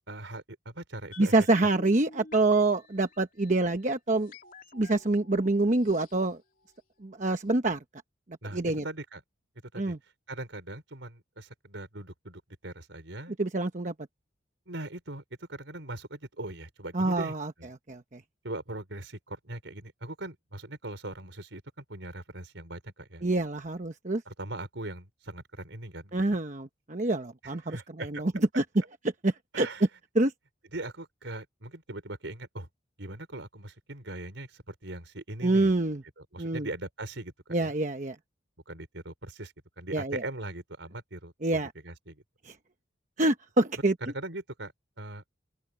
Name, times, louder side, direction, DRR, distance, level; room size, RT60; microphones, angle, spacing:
voice 1, 0.1-1.3 8.4-9.2 9.7-9.9 10.3-13.4 14.7-17.3 17.6-17.7 18.4-23.2 24.3-26.4 27.4-28.2 29.5-29.8 30.7-32.7 33.0-35.7 36.2-37.3 37.6-37.7 38.7-42.2 44.1-44.7 45.0-45.2, right 2 dB, 75° right, 4.3 m, -40 dB
sound 1, 1.1-7.2 7.4-7.5, left 3 dB, 45° left, 2.6 m, -51 dB
voice 2, 1.2-4.3 4.7-6.4 7.0-7.8 8.5-8.8 9.8-10.0 13.4-13.9 16.9-17.5 17.9-18.2 23.2-24.2 26.1-28.6 29.2-29.7 30.1-30.3 35.4-36.0 36.4-36.7 37.5-38.2 39.9-40.2 41.4-41.7 42.4-42.5 43.2-43.9, right 2 dB, 40° right, 1.0 m, -26 dB
open air
head